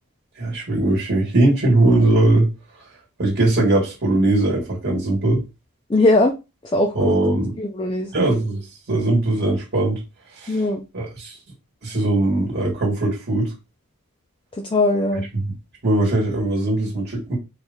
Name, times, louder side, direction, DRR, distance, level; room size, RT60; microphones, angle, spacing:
voice 1, 0.4-2.5 3.2-5.4 6.9-7.5 8.1-10.0 10.3-10.7 10.9-11.4 11.8-13.5 15.1-15.5 15.8-17.4, right 2 dB, 50° right, 1.5 m, -20 dB
voice 2, 5.9-6.3 6.7-7.1 7.6-8.1 10.5-10.8 14.7-15.2, left 2 dB, 25° left, 0.4 m, -19 dB
4.4 x 2.5 x 3.5 m
head